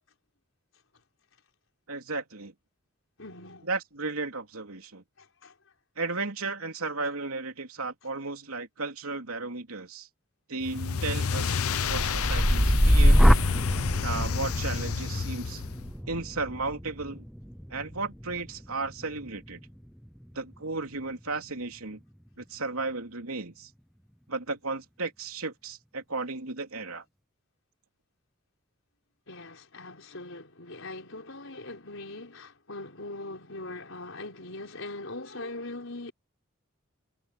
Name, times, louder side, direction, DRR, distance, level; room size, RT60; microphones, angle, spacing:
voice 1, 1.9-2.5 3.7-5.0 6.0-10.1 10.5-13.4 14.0-15.6 16.1-17.2 17.7-19.6 20.3-22.0 22.4-23.7 24.3-27.0, right 3 dB, 90° right, 3.2 m, -34 dB
voice 2, 3.2-3.7 5.2-5.5 29.3-36.1, left 2 dB, 65° left, 4.6 m, -41 dB
sound 1, 10.6-15.9, left 5 dB, 90° left, 0.8 m, -30 dB
sound 2, 11.7-19.6 20.1-20.5, equal, ahead, 0.5 m, -25 dB
head